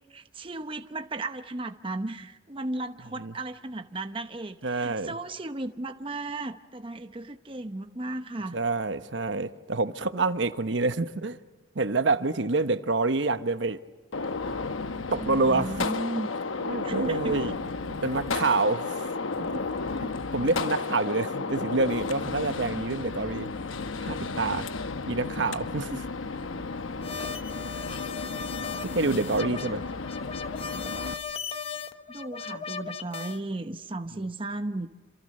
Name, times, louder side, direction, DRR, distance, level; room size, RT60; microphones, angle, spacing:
voice 1, 0.1-8.6 15.1-16.3 16.8-17.4 21.3-21.6 29.4-29.8 32.1-34.9, right 2 dB, 25° right, 0.8 m, -35 dB
voice 2, 4.6-5.1 8.5-11.4 11.7-13.8 15.1-15.9 16.6-17.5 17.8-18.9 19.4-19.5 20.0-23.5 24.0-24.7 25.0-26.0 27.3-27.4 28.9-29.8 34.2-34.3, right 3 dB, 65° right, 1.1 m, -27 dB
Gunshot gunfire, 14.1-31.1, left 4 dB, 90° left, 1.0 m, -33 dB
sound 1, 27.0-33.4, left 5 dB, 30° left, 1.0 m, -37 dB
27.5 x 27.5 x 6.6 m
head